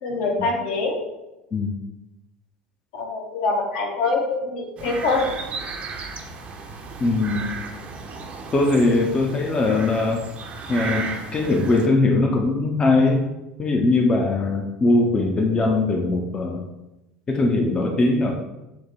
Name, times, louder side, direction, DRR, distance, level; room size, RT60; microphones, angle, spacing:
voice 1, 0.0-1.0 2.9-5.3, left 3 dB, 60° left, 1 dB, 0.8 m, -24 dB
sound 1, 4.8-11.9, right 4 dB, 35° right, 0.5 m, -35 dB
voice 2, 7.0-7.5 8.5-10.2 10.7-13.3 13.6-16.6 17.3-18.3, left 2 dB, 25° left, 1 dB, 0.5 m, -20 dB
4.5 x 2.1 x 3.9 m, 0.97 s
figure-of-eight pair, 70°, 4 cm